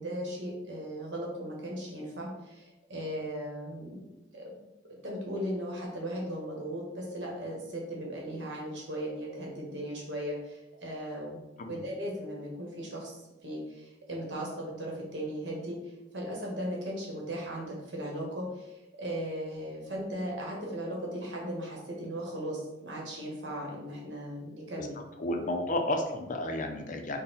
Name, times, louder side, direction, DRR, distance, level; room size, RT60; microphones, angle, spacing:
voice 1, 0.0-4.1 4.3-4.6 5.0-11.4 11.7-13.1 13.4-25.0, equal, 85° right, -2 dB, 1.2 m, -37 dB
voice 2, 24.8-27.2, left 1 dB, 45° left, 4 dB, 0.5 m, -32 dB
4.0 x 2.1 x 4.0 m, 0.97 s
head